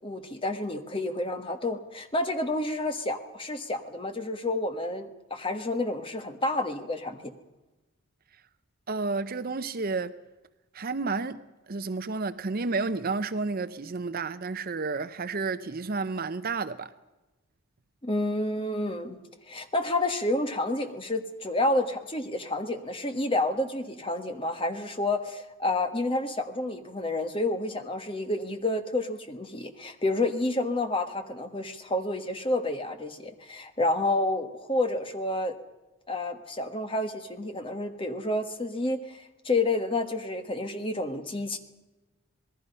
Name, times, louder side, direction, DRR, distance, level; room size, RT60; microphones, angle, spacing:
voice 1, 0.0-7.3 18.0-19.2 19.5-35.5 36.1-41.6, left 2 dB, 25° left, 1.5 m, -29 dB
voice 2, 8.9-10.2 10.7-11.4 11.7-16.9, right 4 dB, 40° right, 0.6 m, -31 dB
26.5 x 20.0 x 5.5 m
head